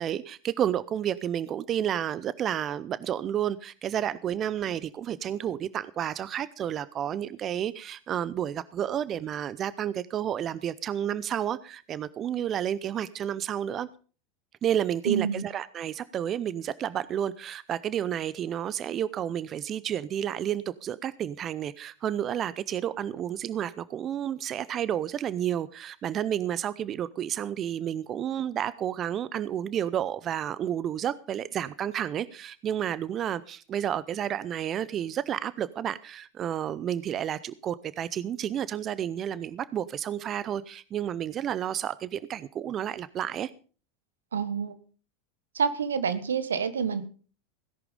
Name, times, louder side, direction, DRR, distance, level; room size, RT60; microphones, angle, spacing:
voice 1, 0.0-13.9 14.6-43.5, right 10 dB, 35° right, 0.6 m, -31 dB
voice 2, 15.1-15.4 44.3-44.7 45.5-47.0, right 6 dB, 80° right, 1.3 m, -28 dB
17.0 x 11.0 x 5.2 m
hypercardioid pair, 85°, 0 cm